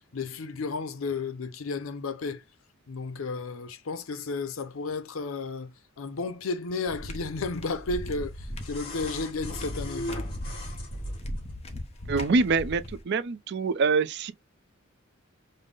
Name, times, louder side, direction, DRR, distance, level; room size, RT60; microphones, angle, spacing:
voice 1, 0.1-2.4 2.9-5.7 6.0-10.1, left 4 dB, 85° left, 0.6 m, -33 dB
sound 1, 6.9-13.0, left 1 dB, 30° left, 0.9 m, -39 dB
sound 2, 7.7-11.5 12.8-12.9, left 1 dB, 50° left, 2.8 m, -38 dB
voice 2, 12.1-14.3, right 4 dB, 60° right, 0.5 m, -25 dB
5.2 x 2.1 x 3.8 m
head